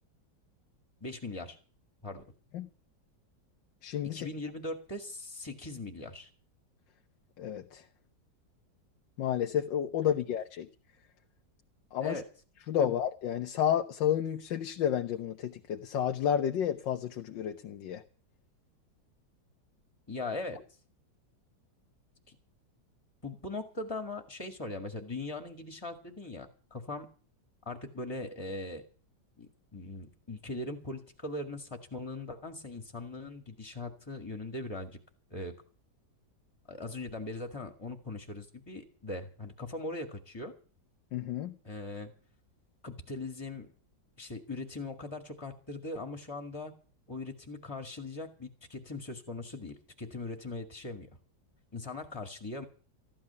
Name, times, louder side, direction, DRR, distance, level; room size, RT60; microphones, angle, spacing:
voice 1, 1.0-1.6 2.0-2.2 4.1-6.3 12.0-12.2 12.8-12.9 20.1-20.6 22.3-22.4 23.2-27.1 27.7-28.8 29.4-35.0 35.3-35.5 36.7-40.5 41.6-42.1 42.8-43.7 44.2-46.7 47.1-51.1 51.7-52.7, left 2 dB, 15° left, 6 dB, 1.9 m, -40 dB
voice 2, 3.8-4.3 7.4-7.8 9.2-10.7 11.9-12.2 12.7-18.0 41.1-41.5, left 9 dB, 85° left, 6 dB, 1.6 m, -31 dB
14.5 x 12.0 x 7.0 m, 0.40 s
omnidirectional pair, 1.9 m